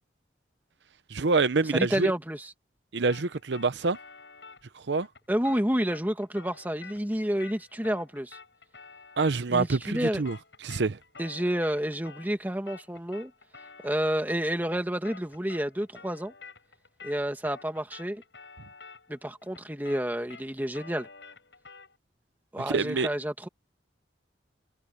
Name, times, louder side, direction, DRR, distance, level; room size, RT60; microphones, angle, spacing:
voice 1, 1.1-2.1 2.9-4.0 4.7-5.1 9.2-10.4 10.6-11.0 22.7-23.1, right 4 dB, 80° right, 0.7 m, -26 dB
voice 2, 1.7-2.5 5.3-8.4 9.5-10.2 11.2-13.3 13.8-16.3 17.0-18.2 19.1-21.1 22.5-23.5, equal, 10° right, 1.8 m, -29 dB
sound 1, 3.1-12.4 12.7-22.0, left 4 dB, 80° left, 7.7 m, -50 dB
head